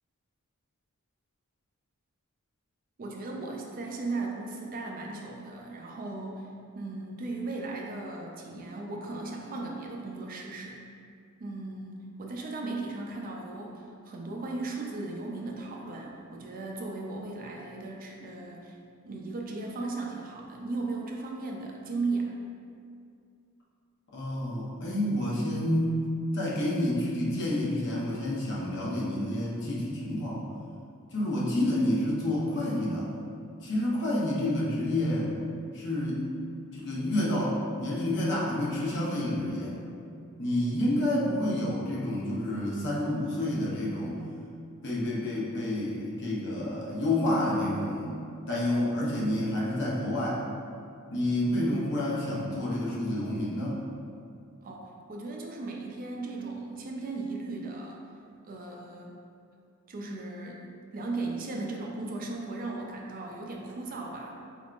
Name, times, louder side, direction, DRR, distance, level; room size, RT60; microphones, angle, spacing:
voice 1, 3.0-6.5 6.7-10.8 11.4-18.8 19.0-22.3 54.6-58.0 58.4-59.2 59.9-64.3, right 3 dB, 40° right, 0 dB, 0.4 m, -36 dB
voice 2, 24.1-26.1 26.3-30.4 31.1-33.1 33.6-35.3 35.7-36.3 36.7-39.8 40.4-44.2 44.8-48.1 48.5-50.4 51.1-53.8, left 1 dB, 50° left, -5 dB, 0.9 m, -29 dB
4.5 x 3.5 x 2.4 m, 2.4 s
head